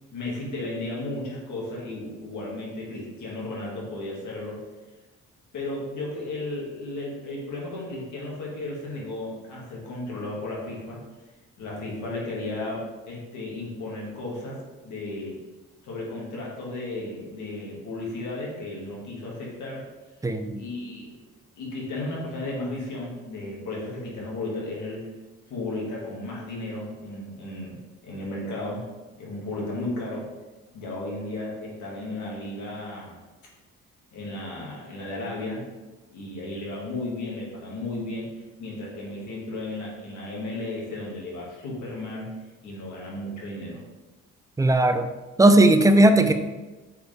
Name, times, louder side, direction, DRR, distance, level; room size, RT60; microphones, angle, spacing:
voice 1, 0.1-4.6 5.5-11.0 11.6-14.6 14.8-15.4 15.8-19.9 20.5-21.2 21.6-25.1 25.5-27.8 28.0-28.9 29.2-30.3 30.7-33.2 34.1-35.6 36.1-38.3 38.6-42.3 42.6-43.8, left 2 dB, 75° left, -4 dB, 2.1 m, -34 dB
voice 2, 20.2-20.6 44.6-45.1 45.4-46.3, right 1 dB, 10° right, 7 dB, 0.5 m, -17 dB
6.9 x 4.3 x 3.5 m, 1.2 s
cardioid pair, 90°, 30 cm